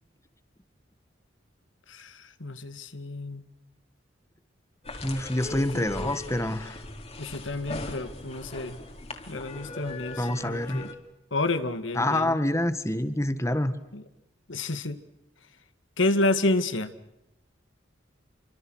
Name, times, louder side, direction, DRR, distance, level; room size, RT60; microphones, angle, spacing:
voice 1, 1.9-3.5 5.5-6.2 7.2-8.8 9.3-10.9 11.3-12.4 13.9-14.0 14.5-15.0 16.0-16.9, left 2 dB, 90° left, 10 dB, 2.1 m, -30 dB
sound 1, 4.8-10.9, left 2 dB, 35° left, 3.4 m, -39 dB
voice 2, 5.0-6.8 10.2-10.8 12.0-13.7, left 1 dB, 15° left, 10 dB, 1.7 m, -27 dB
28.5 x 25.5 x 6.4 m, 0.91 s
head